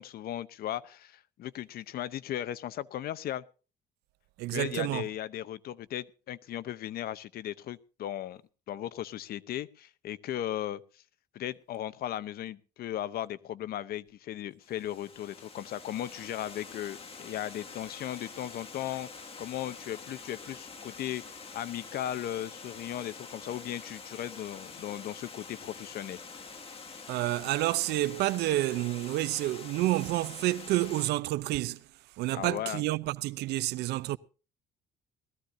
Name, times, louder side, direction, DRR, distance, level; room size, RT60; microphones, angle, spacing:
voice 1, 0.0-3.4 4.5-8.4 8.7-10.8 11.3-21.2 21.5-26.2 32.3-32.8, left 12 dB, 65° left, 0.8 m, -37 dB
voice 2, 4.4-5.0 27.1-31.8 32.2-34.2, right 17 dB, 85° right, 0.6 m, -29 dB
Water, 14.6-31.1, left 4 dB, 35° left, 2.0 m, -46 dB
20.0 x 14.5 x 2.7 m
cardioid pair, 110°, 17 cm